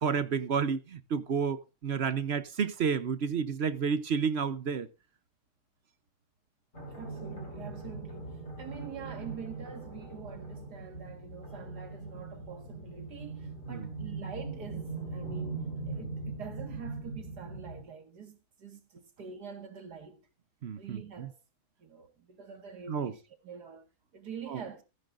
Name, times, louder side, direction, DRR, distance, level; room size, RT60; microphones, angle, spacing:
voice 1, 0.0-4.9 13.7-13.9 15.9-16.1 20.6-21.3 22.9-23.1 24.5-24.6, right 6 dB, 50° right, 0.9 m, -31 dB
sound 1, 6.7-17.8, right 3 dB, 50° left, 5.0 m, -40 dB
voice 2, 6.9-20.2 20.8-21.4 21.8-23.9 24.1-24.8, right 7 dB, 80° right, 2.4 m, -46 dB
14.5 x 14.0 x 2.5 m
omnidirectional pair, 1.7 m